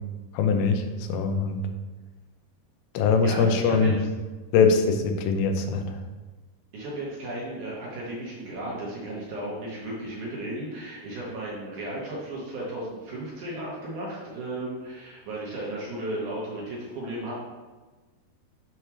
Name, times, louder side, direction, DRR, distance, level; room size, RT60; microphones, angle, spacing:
voice 1, 0.3-0.8 1.1-1.6 2.9-3.9 4.5-6.0, left 5 dB, 90° left, 5 dB, 2.9 m, -22 dB
voice 2, 3.2-4.1 6.7-17.4, right 1 dB, 65° right, -5 dB, 2.2 m, -35 dB
7.0 x 3.2 x 6.0 m, 1.2 s
omnidirectional pair, 4.8 m